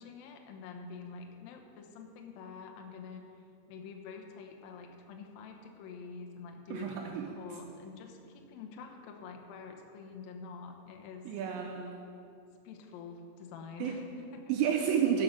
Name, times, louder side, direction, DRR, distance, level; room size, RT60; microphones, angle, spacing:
voice 1, 0.0-3.2 3.7-11.3 12.6-14.5, left 5 dB, 80° left, 3 dB, 2.0 m, -47 dB
voice 2, 6.7-7.4 11.3-12.0 13.8-13.9 14.5-15.2, right 8 dB, 80° right, 2 dB, 2.8 m, -30 dB
11.5 x 7.5 x 6.5 m, 2.5 s
omnidirectional pair, 5.5 m